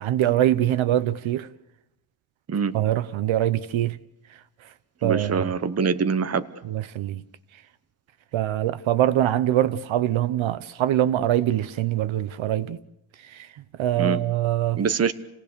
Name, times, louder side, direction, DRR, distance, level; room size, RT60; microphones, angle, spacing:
voice 1, 0.0-1.5 2.7-4.0 5.0-5.5 6.6-7.2 8.3-12.8 13.2-13.5 13.8-14.8, right 12 dB, 70° right, 0.9 m, -23 dB
voice 2, 5.0-6.5 14.0-14.2 14.7-15.1, right 6 dB, 30° right, 1.0 m, -24 dB
29.5 x 18.0 x 6.8 m
cardioid pair, 130°, 49 cm